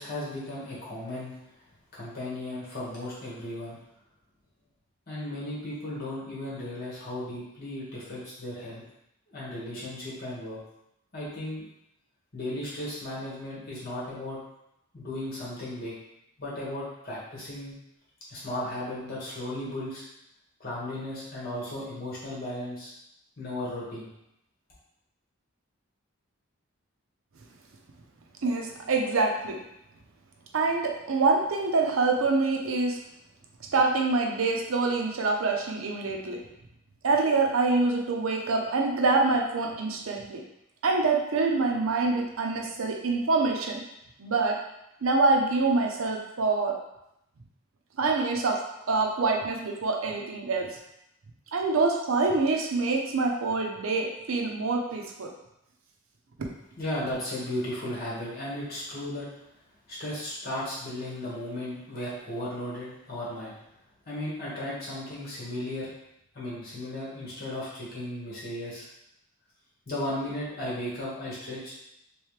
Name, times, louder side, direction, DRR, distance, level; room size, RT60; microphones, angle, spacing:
voice 1, 0.0-1.3 1.9-3.8 5.1-8.8 9.3-10.6 11.1-11.6 12.3-14.4 14.9-15.9 16.4-17.7 18.3-20.0 20.6-22.9 23.4-24.1 56.8-59.3 59.9-63.5 64.1-65.9 66.3-68.9 69.9-71.7, left 1 dB, 45° left, -7 dB, 1.4 m, -35 dB
voice 2, 28.4-29.6 30.5-33.0 33.7-36.4 37.0-40.4 40.8-43.8 44.2-44.6 45.0-46.8 48.0-48.6 48.9-50.7 51.5-55.3, right 3 dB, 85° right, 1 dB, 0.6 m, -25 dB
3.2 x 3.1 x 3.2 m, 0.82 s
head